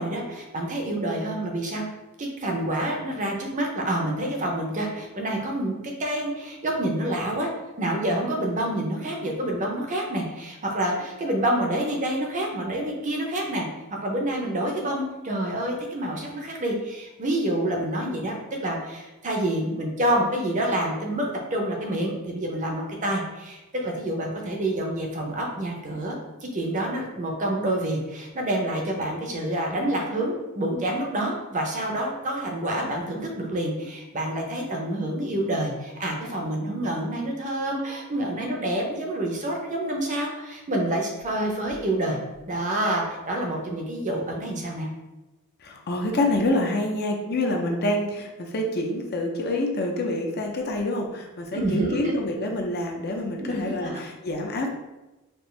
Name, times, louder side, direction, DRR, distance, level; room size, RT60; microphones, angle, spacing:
voice 1, 0.0-1.8 2.2-7.5 7.8-13.7 14.0-26.2 26.5-42.2 42.5-44.9 51.5-52.1 53.4-54.0, right 1 dB, 35° right, 0 dB, 0.6 m, -28 dB
voice 2, 45.6-54.7, left 1 dB, 45° left, 1 dB, 0.5 m, -27 dB
4.4 x 2.5 x 3.2 m, 1.0 s
head